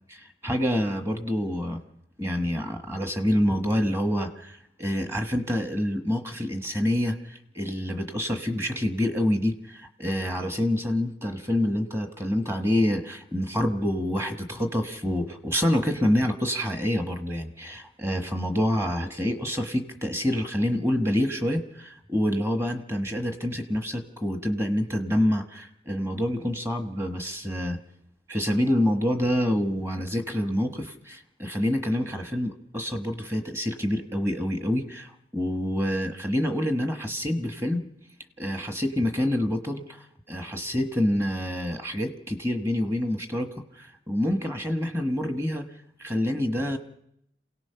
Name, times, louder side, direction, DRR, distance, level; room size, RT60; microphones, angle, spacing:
voice 1, 0.4-1.8 2.2-27.8 28.3-37.8 38.4-39.8 40.3-45.6 46.0-46.8, left 1 dB, 15° right, 6 dB, 1.3 m, -27 dB
27.5 x 17.5 x 5.7 m, 0.76 s
head